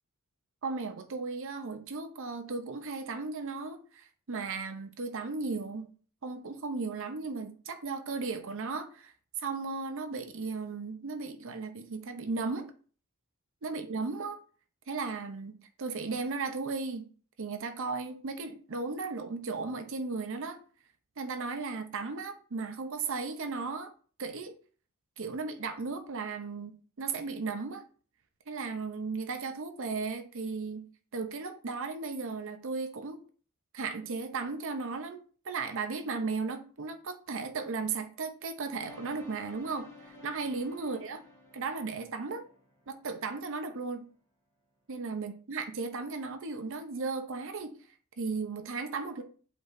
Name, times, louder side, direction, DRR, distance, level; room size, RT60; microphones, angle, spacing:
voice 1, 0.6-5.9 6.2-9.1 9.4-12.7 13.6-14.4 14.9-17.1 17.4-20.6 21.2-23.9 24.2-24.6 25.2-27.8 28.5-33.2 33.7-39.9 40.2-41.2 41.5-42.4 42.9-44.1 44.9-47.8 48.2-49.2, right 4 dB, 60° right, 0.7 m, -36 dB
sound 1, 38.8-43.8, left 2 dB, 15° left, 2.0 m, -54 dB
7.9 x 4.5 x 2.6 m
head